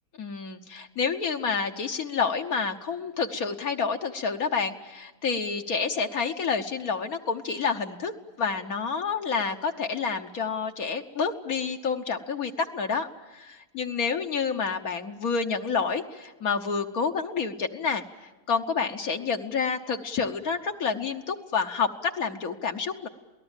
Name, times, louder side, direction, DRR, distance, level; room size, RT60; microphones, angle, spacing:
voice 1, 0.2-8.1 8.4-18.0 18.5-23.1, left 5 dB, 65° left, 4 dB, 1.5 m, -29 dB
27.5 x 18.5 x 9.0 m, 1.1 s
omnidirectional pair, 1.7 m